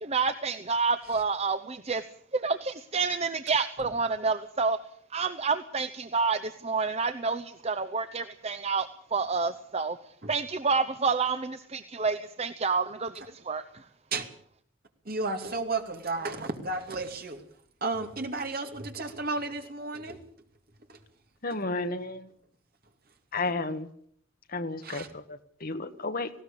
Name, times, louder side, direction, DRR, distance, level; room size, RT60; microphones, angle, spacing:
voice 1, 0.0-2.0 2.3-4.8 5.1-10.0 10.3-13.1 13.5-13.6, right 4 dB, 30° right, 10 dB, 0.8 m, -28 dB
voice 2, 15.0-17.4 17.8-20.2 20.9-21.0 24.8-25.1, right 3 dB, 45° right, 6 dB, 2.6 m, -33 dB
voice 3, 21.4-22.3 23.3-23.9 24.5-26.3, left 3 dB, 45° left, 9 dB, 1.5 m, -32 dB
19.0 x 17.0 x 8.7 m, 0.62 s
head